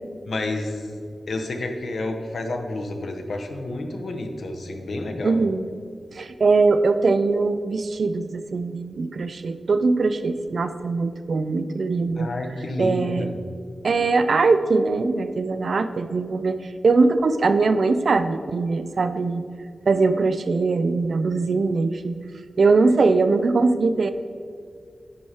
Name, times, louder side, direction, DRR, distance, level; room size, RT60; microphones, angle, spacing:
voice 1, 0.3-1.0 1.3-5.3 12.2-13.3, left 2 dB, 65° left, 4 dB, 0.9 m, -30 dB
voice 2, 5.2-5.7 6.1-12.3 12.8-13.3 13.8-16.6 16.8-19.4 19.9-22.2 22.6-24.1, right 3 dB, 60° right, 10 dB, 0.4 m, -21 dB
9.9 x 4.8 x 4.3 m, 2.2 s
wide cardioid pair, 145°, 0 cm